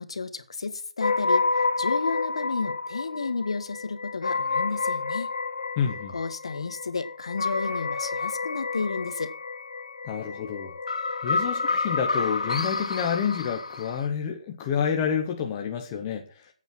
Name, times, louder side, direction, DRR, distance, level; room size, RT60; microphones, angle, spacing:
voice 1, 0.0-1.4 1.8-5.3 6.1-9.3, left 4 dB, 60° left, 1.6 m, -32 dB
sound 1, 1.0-14.1, left 4 dB, 85° left, 2.2 m, -29 dB
voice 2, 5.8-6.2 10.0-10.7 11.2-16.5, left 7 dB, 15° left, 0.9 m, -29 dB
14.0 x 8.4 x 5.9 m
hypercardioid pair, 180°, 3 cm